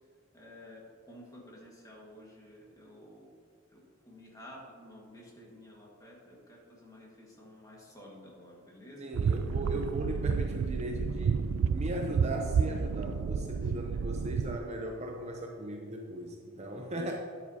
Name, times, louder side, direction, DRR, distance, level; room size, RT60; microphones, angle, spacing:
voice 1, 0.3-3.3 3.7-9.1 13.6-13.7 16.9-17.1, left 1 dB, 15° left, -3 dB, 1.7 m, -52 dB
voice 2, 9.0-11.4 11.7-17.1, right 1 dB, 30° right, 1 dB, 0.7 m, -38 dB
sound 1, 9.1-14.6, right 6 dB, 70° right, 0.3 m, -30 dB
9.4 x 9.2 x 2.8 m, 2.3 s
head